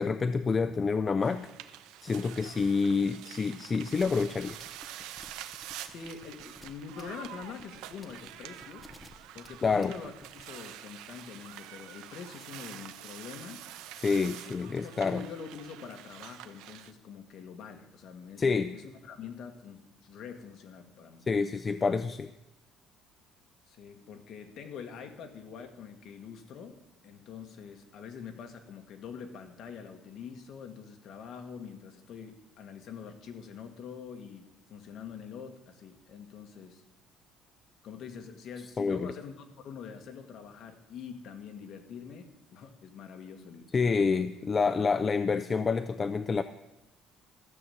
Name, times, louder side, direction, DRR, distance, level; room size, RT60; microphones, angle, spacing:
voice 1, 0.0-1.5 2.0-4.6 9.6-9.9 14.0-15.2 18.4-18.7 21.3-22.3 38.8-39.1 43.7-46.4, left 5 dB, 20° left, 11 dB, 0.4 m, -28 dB
sound 1, 1.2-16.9, right 12 dB, 85° right, 0.8 m, -47 dB
sound 2, 4.0-10.4, equal, ahead, 1.0 m, -52 dB
voice 2, 5.8-8.8 9.3-13.7 14.7-21.2 23.7-36.8 37.8-44.3, left 6 dB, 45° left, 5 dB, 1.6 m, -45 dB
14.0 x 7.0 x 7.8 m, 0.95 s
cardioid pair, 165°, 0 cm